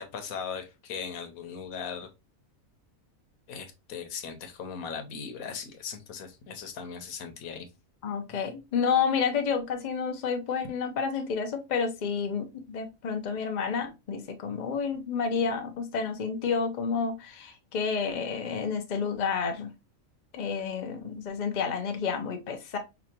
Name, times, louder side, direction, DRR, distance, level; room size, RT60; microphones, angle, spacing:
voice 1, 0.0-2.1 3.5-7.7, left 6 dB, 90° left, 1.2 m, -38 dB
voice 2, 8.0-19.7 20.3-22.8, left 6 dB, 40° left, 0.7 m, -30 dB
5.1 x 2.4 x 2.8 m
omnidirectional pair, 1.4 m